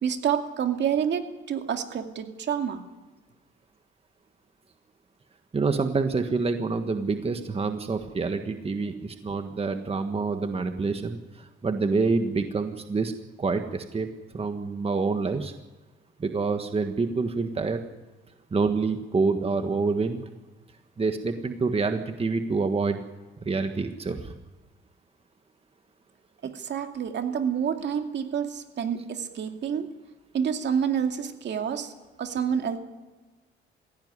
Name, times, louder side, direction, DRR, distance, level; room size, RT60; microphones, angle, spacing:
voice 1, 0.0-2.8 26.4-29.9 30.3-31.9 32.2-32.8, right 8 dB, 60° right, 5 dB, 2.4 m, -28 dB
voice 2, 5.5-13.1 13.4-14.1 14.3-15.5 16.2-17.8 18.5-20.2 21.0-23.0 23.4-24.3, right 4 dB, 30° right, 7 dB, 1.6 m, -27 dB
20.5 x 16.5 x 9.8 m, 1.2 s
cardioid pair, 90°, 20 cm